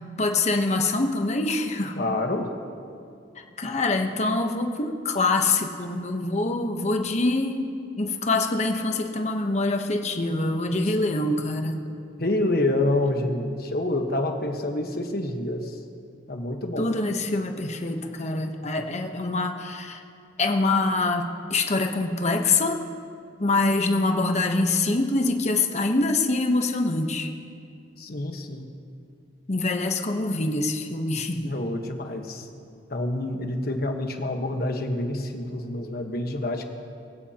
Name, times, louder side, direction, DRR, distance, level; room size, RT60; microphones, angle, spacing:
voice 1, 0.2-2.0 3.6-11.8 16.8-20.0 20.4-22.8 23.4-27.3 29.5-31.5, left 2 dB, 40° left, 4 dB, 1.0 m, -25 dB
voice 2, 2.0-2.5 12.2-15.8 16.3-16.9 28.0-28.7 31.4-32.5 32.9-36.6, left 1 dB, 60° left, 4 dB, 1.3 m, -27 dB
22.0 x 16.0 x 2.9 m, 2.4 s
head